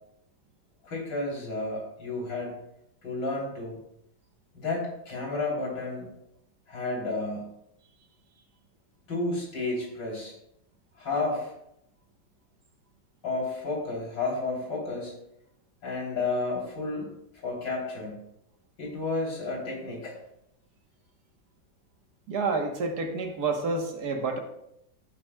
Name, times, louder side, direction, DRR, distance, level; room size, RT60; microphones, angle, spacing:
voice 1, 0.8-2.5 3.0-3.8 4.5-6.1 6.7-7.5 9.1-10.4 11.0-11.5 13.2-15.1 15.8-17.1 17.3-18.2 18.8-20.2, left 3 dB, 80° left, -2 dB, 3.9 m, -31 dB
voice 2, 22.3-24.4, right 4 dB, 65° right, 4 dB, 1.6 m, -29 dB
15.5 x 9.0 x 2.2 m, 0.80 s
omnidirectional pair, 1.9 m